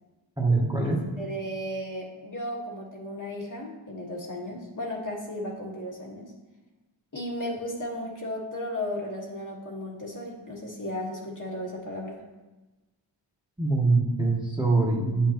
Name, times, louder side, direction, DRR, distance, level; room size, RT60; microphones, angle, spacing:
voice 1, 0.4-1.0 13.6-15.3, right 3 dB, 10° right, -3 dB, 1.3 m, -23 dB
voice 2, 1.2-6.3 7.1-12.1, left 1 dB, 40° left, -2 dB, 1.6 m, -35 dB
9.5 x 5.7 x 3.0 m, 1.1 s
wide cardioid pair, 60°, 48 cm